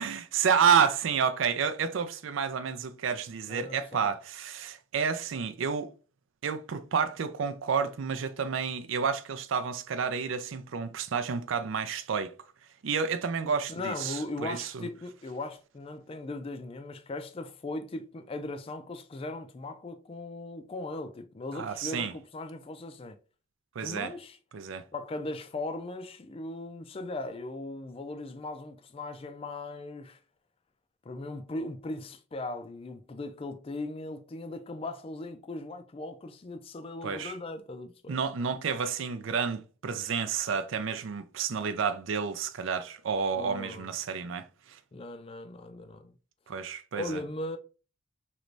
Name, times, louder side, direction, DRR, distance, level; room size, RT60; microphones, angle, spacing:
voice 1, 0.0-5.9 6.4-12.3 12.8-14.9 21.5-22.1 23.8-24.1 24.5-24.8 37.0-37.4 38.1-44.8 46.5-47.2, right 6 dB, 70° right, 0.4 m, -30 dB
voice 2, 3.5-4.1 13.7-23.2 23.8-24.4 24.9-30.2 31.0-38.2 43.3-43.9 44.9-46.1 47.0-47.6, left 2 dB, 30° left, 0.4 m, -38 dB
3.2 x 3.0 x 2.6 m
head